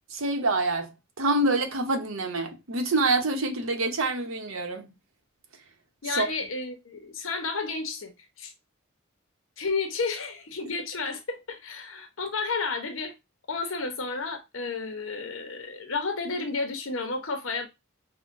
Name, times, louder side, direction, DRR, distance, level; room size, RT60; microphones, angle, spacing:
voice 1, 0.1-0.9 1.2-4.9 6.1-6.3, right 2 dB, 85° right, 0.9 m, -26 dB
voice 2, 6.0-8.5 9.6-13.1 13.5-17.7, left 4 dB, 70° left, 0.9 m, -32 dB
5.6 x 2.2 x 2.6 m
head